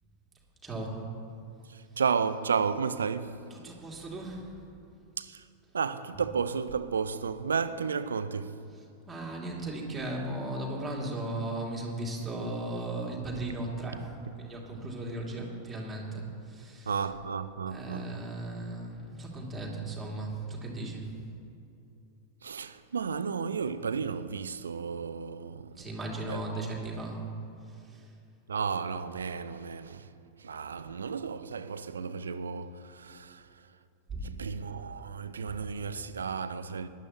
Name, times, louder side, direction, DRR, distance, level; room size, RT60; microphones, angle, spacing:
voice 1, 0.6-1.1 3.5-4.5 6.1-6.3 8.7-14.1 14.4-17.1 17.7-21.1 25.8-27.2 27.7-28.1 34.1-34.4 35.5-35.6, right 2 dB, 15° right, 2.6 m, -37 dB
voice 2, 1.7-3.4 5.2-5.4 5.7-8.6 16.9-18.1 22.4-25.9 26.3-26.4 28.5-30.1 30.4-33.5 34.2-36.9, right 6 dB, 70° right, 0.5 m, -33 dB
20.0 x 11.5 x 3.0 m
figure-of-eight pair, 90°, 0 cm